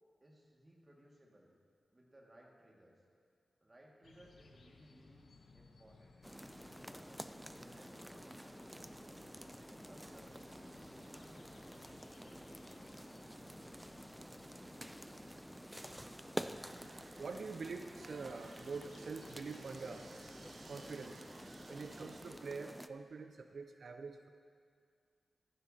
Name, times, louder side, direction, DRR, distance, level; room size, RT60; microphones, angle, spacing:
voice 1, 0.2-1.5 1.9-2.9 3.6-5.3 5.5-6.2 6.6-8.7 9.3-9.5 9.9-11.7, right 1 dB, 30° right, -2 dB, 1.9 m, -63 dB
sound 1, 4.0-22.4, left 3 dB, 85° left, 0.8 m, -62 dB
sound 2, 6.2-22.9, equal, 5° right, 0.4 m, -49 dB
voice 2, 16.1-24.3, right 4 dB, 75° right, 7 dB, 0.4 m, -46 dB
14.5 x 10.0 x 2.8 m, 2.1 s
cardioid pair, 60°, 0 cm